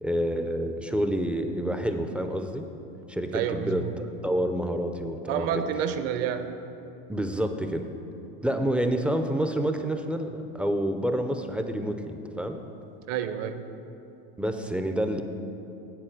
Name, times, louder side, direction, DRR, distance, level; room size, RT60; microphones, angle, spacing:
voice 1, 0.0-2.7 3.1-5.5 7.1-7.8 8.4-12.6 14.4-15.2, right 1 dB, 5° right, 6 dB, 0.3 m, -28 dB
voice 2, 3.3-3.9 5.3-6.5 13.1-13.7, right 8 dB, 50° right, 9 dB, 0.6 m, -29 dB
9.1 x 4.2 x 7.2 m, 2.9 s
supercardioid pair, 115°, 31 cm